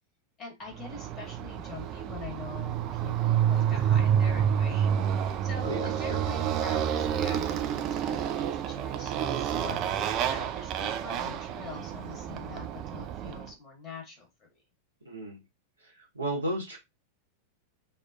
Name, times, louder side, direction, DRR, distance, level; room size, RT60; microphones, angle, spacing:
voice 1, 0.4-5.1 5.4-14.5, left 3 dB, 25° left, 1 dB, 1.3 m, -44 dB
Motorcycle, 0.8-13.5, right 9 dB, 35° right, 0.3 m, -29 dB
voice 2, 5.6-6.2 15.1-15.4 15.8-16.8, right 1 dB, 80° right, -2 dB, 0.9 m, -34 dB
2.6 x 2.3 x 2.4 m, 0.21 s
figure-of-eight pair, 90°, 0 cm